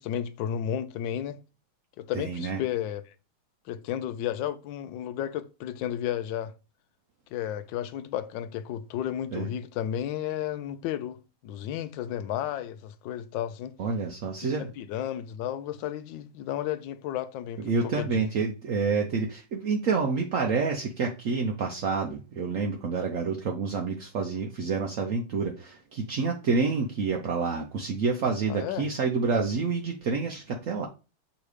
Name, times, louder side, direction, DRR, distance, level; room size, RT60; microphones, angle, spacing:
voice 1, 0.0-1.4 2.0-3.0 3.7-6.5 7.3-11.2 11.4-13.7 14.4-18.3 28.5-28.8, left 10 dB, 70° left, 1.2 m, -33 dB
voice 2, 2.1-2.6 9.3-9.5 13.8-14.7 17.6-30.9, right 4 dB, 70° right, 0.7 m, -28 dB
6.6 x 3.0 x 4.8 m
omnidirectional pair, 2.3 m